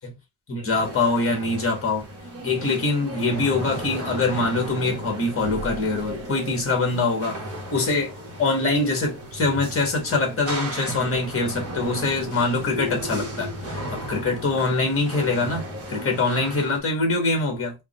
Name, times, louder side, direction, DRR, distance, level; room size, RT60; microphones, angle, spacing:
voice 1, 0.5-2.0 2.4-7.4 7.7-8.1 8.4-17.7, left 3 dB, 25° left, 1.3 m, -24 dB
sound 1, 0.7-16.8, equal, 30° right, 1.0 m, -34 dB
3.5 x 2.2 x 3.9 m
cardioid pair, 160°, 49 cm